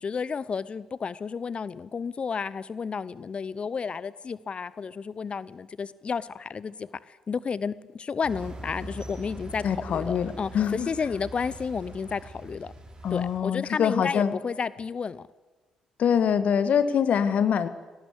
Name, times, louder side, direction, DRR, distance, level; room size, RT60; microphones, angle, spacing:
voice 1, 0.0-12.7 13.1-15.3, left 5 dB, 40° left, 19 dB, 0.7 m, -32 dB
sound 1, 8.2-13.4, right 1 dB, 30° right, 5.9 m, -42 dB
voice 2, 9.6-10.9 13.0-14.3 16.0-17.7, left 8 dB, 55° left, 12 dB, 1.6 m, -24 dB
19.5 x 18.0 x 8.3 m, 1.2 s
hypercardioid pair, 45°, 3 cm